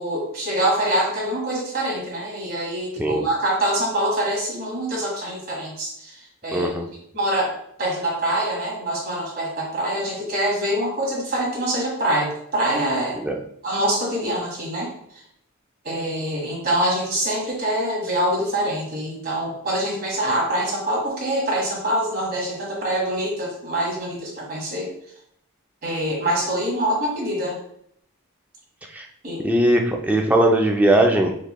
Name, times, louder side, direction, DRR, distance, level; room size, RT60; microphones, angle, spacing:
voice 1, 0.0-6.7 7.1-13.2 13.6-14.9 15.8-24.9 25.8-27.6 29.2-29.4, right 1 dB, 45° right, -3 dB, 1.7 m, -25 dB
voice 2, 6.5-6.9 13.2-13.3 28.9-29.1 29.4-31.3, right 1 dB, 5° right, 1 dB, 0.4 m, -19 dB
6.3 x 3.1 x 2.2 m, 0.69 s
head